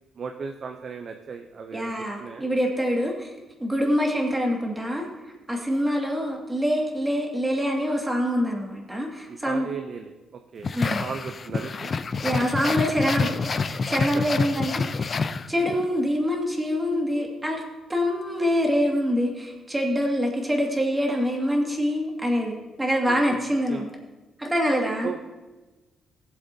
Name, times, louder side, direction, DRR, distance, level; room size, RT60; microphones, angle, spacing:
voice 1, 0.2-2.4 9.3-11.9 23.1-23.8 25.0-25.2, right 5 dB, 50° right, 5 dB, 0.6 m, -36 dB
voice 2, 1.7-3.3 3.6-5.1 5.5-9.7 10.7-11.0 12.2-13.3 13.9-17.6 17.9-23.9 24.4-25.1, equal, 15° right, -1 dB, 2.0 m, -25 dB
sound 1, 10.6-15.9, left 4 dB, 40° left, 0.5 m, -27 dB
16.5 x 7.6 x 2.7 m, 1.2 s
cardioid pair, 95°, 0 cm